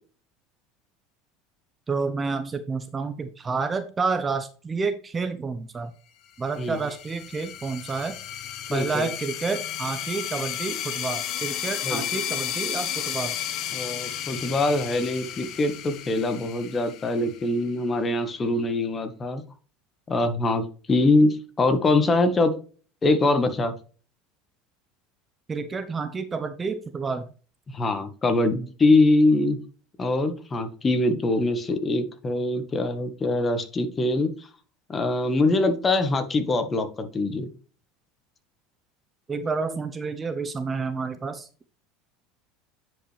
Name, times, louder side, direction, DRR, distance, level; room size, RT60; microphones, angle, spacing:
voice 1, 1.9-5.9 6.4-8.1 8.7-13.3 25.5-27.2 39.3-41.5, right 4 dB, 20° right, 10 dB, 0.8 m, -29 dB
sound 1, 6.5-17.7, left 11 dB, 50° left, 1.4 m, -33 dB
voice 2, 8.7-9.1 11.8-12.0 13.7-19.4 20.1-22.5 23.0-23.7 27.7-29.6 30.0-34.3 34.9-37.5, left 2 dB, 25° left, 9 dB, 1.6 m, -23 dB
9.7 x 5.4 x 3.4 m, 0.38 s
supercardioid pair, 110°, 0 cm